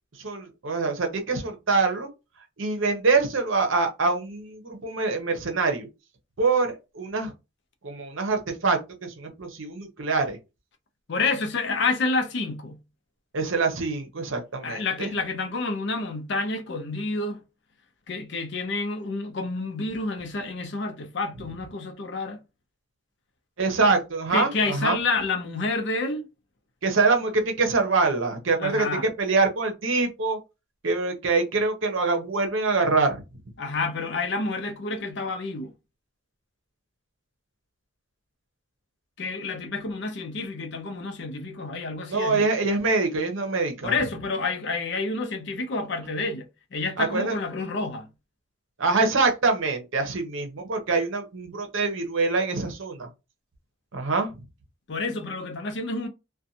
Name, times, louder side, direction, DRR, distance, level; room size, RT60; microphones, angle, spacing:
voice 1, 0.2-2.1 2.6-5.9 6.4-7.3 7.8-10.4 13.3-15.1 23.6-25.0 26.8-28.9 29.2-30.4 30.8-33.2 42.1-43.9 47.0-47.4 48.8-53.1 53.9-54.3, right 3 dB, 70° right, 0.7 m, -25 dB
voice 2, 11.1-12.8 14.6-17.4 18.1-22.4 24.3-26.3 28.6-29.1 33.6-35.7 39.2-42.5 43.8-48.1 54.9-56.1, left 3 dB, 55° left, 0.5 m, -29 dB
2.5 x 2.2 x 2.7 m
head